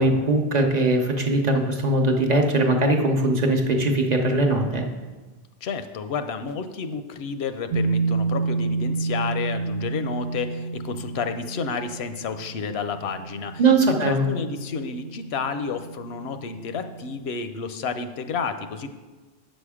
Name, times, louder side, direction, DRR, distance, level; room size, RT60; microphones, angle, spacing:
voice 1, 0.0-4.8 13.6-14.2, right 2 dB, 45° right, 2 dB, 0.9 m, -20 dB
voice 2, 5.6-13.6 13.9-18.9, left 5 dB, 85° left, 9 dB, 0.9 m, -31 dB
sound 1, 7.7-17.2, right 3 dB, 70° right, 0.8 m, -30 dB
7.8 x 6.3 x 4.9 m, 1.3 s
omnidirectional pair, 1.0 m